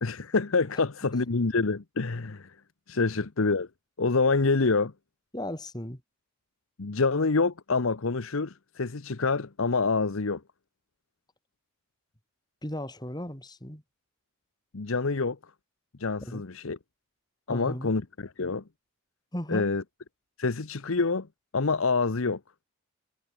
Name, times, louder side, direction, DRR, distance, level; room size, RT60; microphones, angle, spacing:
voice 1, 0.0-2.5 2.9-3.7 4.0-4.9 6.8-10.4 14.7-15.4 16.0-16.8 17.5-18.6 19.5-19.8 20.4-21.3 21.5-22.4, left 4 dB, 70° left, 0.9 m, -26 dB
voice 2, 5.3-6.0 12.6-13.8 16.2-16.4 17.5-17.9 19.3-19.7, left 1 dB, 20° left, 3.9 m, -36 dB
head